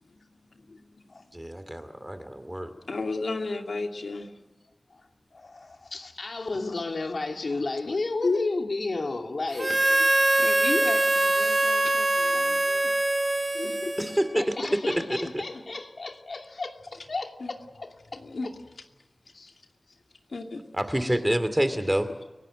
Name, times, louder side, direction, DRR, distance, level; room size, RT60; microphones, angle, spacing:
voice 1, 0.5-0.9 2.9-4.3 8.2-8.5 10.4-13.0 13.5-14.1 14.9-15.6 17.4-17.5 18.1-18.5 20.3-20.6, left 3 dB, 90° left, 4 dB, 2.4 m, -33 dB
voice 2, 1.3-2.7 14.0-14.6 14.9-15.4 20.7-22.1, right 1 dB, 10° right, 10 dB, 2.3 m, -27 dB
voice 3, 5.3-10.1 12.3-12.5 14.0-18.5 19.3-19.5 21.0-21.2, left 3 dB, 70° left, 4 dB, 2.7 m, -33 dB
Harmonica, 9.6-14.4, right 2 dB, 35° right, 1.4 m, -23 dB
30.0 x 17.5 x 7.9 m, 1.1 s
wide cardioid pair, 80°, 0 cm